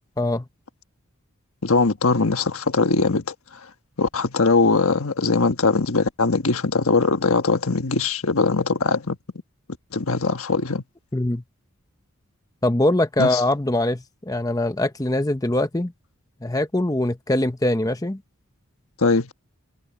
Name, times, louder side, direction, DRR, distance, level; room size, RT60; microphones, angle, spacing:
voice 1, 1.6-3.3 4.0-9.2 9.9-10.8 13.2-13.4 19.0-19.3, left 3 dB, 75° left, 1.4 m, -21 dB
voice 2, 11.1-11.4 12.6-15.9 16.4-18.2, left 1 dB, 15° left, 0.8 m, -22 dB
head